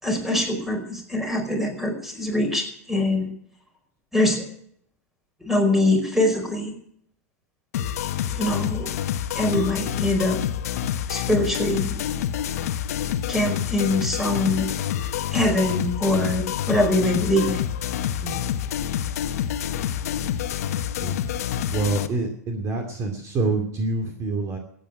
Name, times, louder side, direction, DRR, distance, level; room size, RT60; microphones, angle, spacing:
voice 1, 0.0-3.3 4.1-4.5 5.4-6.8 8.3-8.9 9.3-10.4 11.1-12.0 13.3-14.7 15.3-17.6, left 1 dB, 5° right, 4 dB, 4.9 m, -23 dB
sound 1, 7.7-22.1, left 10 dB, 75° left, 1.2 m, -27 dB
voice 2, 18.0-18.5 21.0-21.4 21.7-24.6, right 3 dB, 35° right, 4 dB, 2.6 m, -27 dB
14.5 x 9.5 x 9.2 m, 0.66 s
hypercardioid pair, 115°, 8 cm